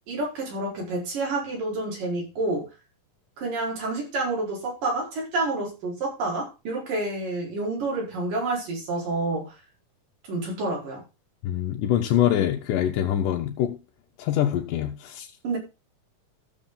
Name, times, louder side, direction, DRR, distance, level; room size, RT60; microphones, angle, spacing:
voice 1, 0.1-2.7 3.4-9.5 10.3-11.0 15.4-15.6, right 2 dB, 85° right, 6.4 m, -29 dB
voice 2, 11.4-13.8 14.2-15.3, left 11 dB, 85° left, 2.5 m, -24 dB
14.0 x 7.3 x 3.9 m
omnidirectional pair, 3.7 m